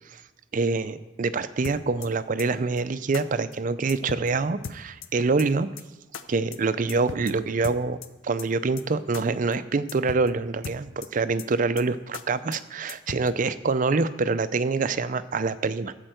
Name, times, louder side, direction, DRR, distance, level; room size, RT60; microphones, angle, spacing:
voice 1, 0.5-5.7 6.3-8.0 8.2-15.9, right 4 dB, 40° right, 13 dB, 0.4 m, -25 dB
sound 1, 1.6-2.1 2.4-2.5 2.8-2.9 3.1-3.2 3.5-3.6 3.9-4.3 4.6-5.1 5.4-5.5 5.8-5.9 6.1-6.2 6.5-6.6 6.9-7.3 7.6-8.1 8.4-8.5 8.8-8.9 9.1-9.2 9.5-9.6 9.9-10.3 10.6-11.1 11.4-11.5 11.8-11.9 12.1-12.2 12.5-12.6 12.9-13.3, left 6 dB, 75° left, 0.6 m, -37 dB
13.0 x 4.5 x 7.8 m, 1.1 s
head